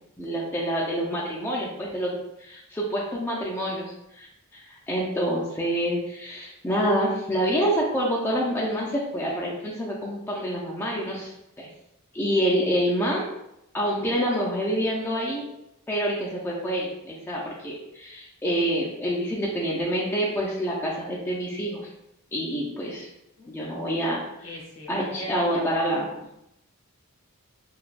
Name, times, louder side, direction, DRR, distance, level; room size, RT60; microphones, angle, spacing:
voice 1, 0.2-4.3 4.5-11.3 12.1-13.2 13.7-15.4 15.9-21.9 22.3-23.1 23.5-24.5 24.9-26.1, equal, 10° left, -5 dB, 0.3 m, -27 dB
voice 2, 23.4-23.8 24.4-25.6 26.0-26.4, equal, 60° left, -2 dB, 0.7 m, -40 dB
3.2 x 2.2 x 2.4 m, 0.84 s
head